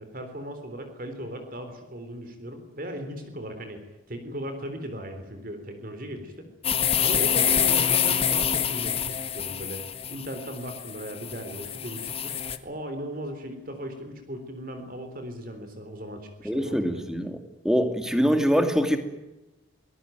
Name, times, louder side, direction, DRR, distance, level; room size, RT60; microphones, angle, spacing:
voice 1, 0.0-6.5 7.0-9.8 10.1-12.4 12.6-17.1, equal, 45° right, 7 dB, 3.7 m, -37 dB
sound 1, 6.6-12.6, left 8 dB, 30° left, 1.6 m, -26 dB
voice 2, 16.4-17.4 17.6-19.0, equal, 5° right, 7 dB, 2.5 m, -23 dB
25.5 x 20.0 x 9.3 m, 1.0 s
head